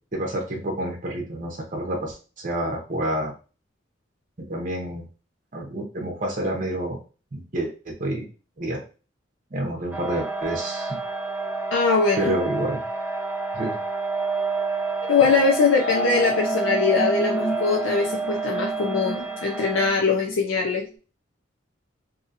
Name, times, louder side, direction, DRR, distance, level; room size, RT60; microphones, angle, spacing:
voice 1, 0.1-2.2 2.4-3.3 4.5-5.0 5.5-7.0 7.3-8.3 8.6-8.8 9.5-11.0 12.2-12.8 13.5-13.8, right 1 dB, 40° right, 0 dB, 0.7 m, -28 dB
sound 1, 9.9-19.9, right 3 dB, 10° right, 0.4 m, -28 dB
voice 2, 11.7-12.4 15.1-20.8, left 4 dB, 75° left, 0 dB, 0.5 m, -22 dB
sound 2, 15.8-20.4, right 1 dB, 60° left, 0.9 m, -32 dB
2.7 x 2.7 x 2.5 m, 0.35 s
head